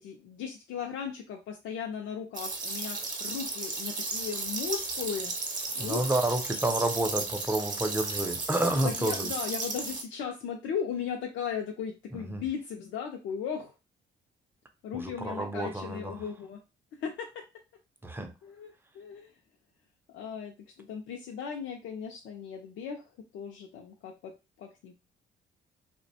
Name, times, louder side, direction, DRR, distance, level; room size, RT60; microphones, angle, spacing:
voice 1, 0.0-5.3 5.7-6.3 8.8-13.7 14.8-16.6 17.0-17.4 18.4-19.3 20.1-24.9, left 7 dB, 75° left, 0.4 m, -37 dB
sound 1, 2.3-10.0, right 3 dB, 40° right, 0.7 m, -34 dB
voice 2, 5.8-9.3 12.1-12.4 14.9-16.2 18.0-18.3, right 1 dB, 10° right, 0.4 m, -30 dB
2.4 x 2.1 x 2.7 m
cardioid pair, 90°, 20 cm